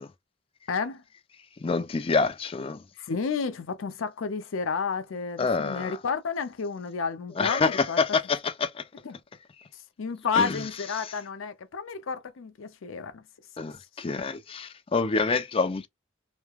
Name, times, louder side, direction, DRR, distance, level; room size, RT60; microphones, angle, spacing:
voice 1, 0.7-1.0 3.0-8.0 9.0-9.2 10.0-13.2, left 5 dB, 85° left, 0.5 m, -31 dB
voice 2, 1.6-2.8 5.4-6.0 7.4-8.8 10.4-10.6 13.6-15.9, left 4 dB, 30° left, 0.3 m, -27 dB
3.1 x 2.1 x 2.3 m
head